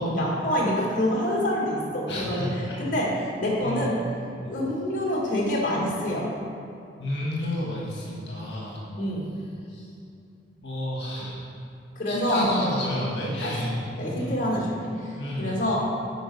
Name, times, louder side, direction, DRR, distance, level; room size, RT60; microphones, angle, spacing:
voice 1, 0.0-4.0 4.5-6.3 9.0-9.3 11.9-12.5 13.4-15.8, left 1 dB, 45° left, -4 dB, 1.8 m, -27 dB
voice 2, 2.1-2.8 3.6-3.9 4.4-4.5 7.0-8.9 9.7-9.9 10.6-11.4 12.1-13.7 14.2-14.4 15.2-15.6, left 1 dB, 70° left, -4 dB, 1.6 m, -30 dB
9.1 x 5.2 x 5.4 m, 2.6 s
head